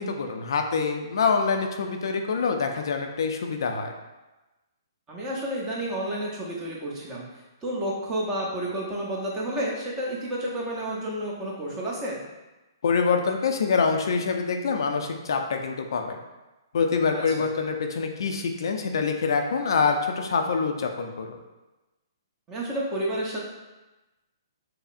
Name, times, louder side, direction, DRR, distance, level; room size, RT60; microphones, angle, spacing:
voice 1, 0.0-3.9 12.8-16.2 16.7-21.4, left 5 dB, 70° left, 4 dB, 0.4 m, -25 dB
voice 2, 5.1-7.2 7.6-12.2 17.1-17.4 22.5-23.4, right 1 dB, 20° right, -4 dB, 0.8 m, -30 dB
5.4 x 2.0 x 2.5 m, 1.1 s
hypercardioid pair, 140°, 2 cm